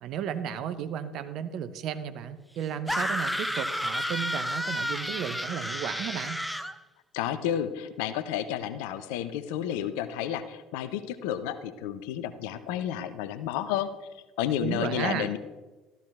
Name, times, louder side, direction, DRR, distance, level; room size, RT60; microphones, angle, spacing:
voice 1, 0.0-6.4 14.6-15.3, right 9 dB, 55° right, 11 dB, 0.8 m, -34 dB
sound 1, 2.9-6.7, equal, 5° left, 0.8 m, -31 dB
voice 2, 7.1-13.9 14.4-15.4, left 10 dB, 70° left, 12 dB, 0.7 m, -31 dB
14.0 x 12.5 x 3.4 m, 1.2 s
figure-of-eight pair, 60°, 0 cm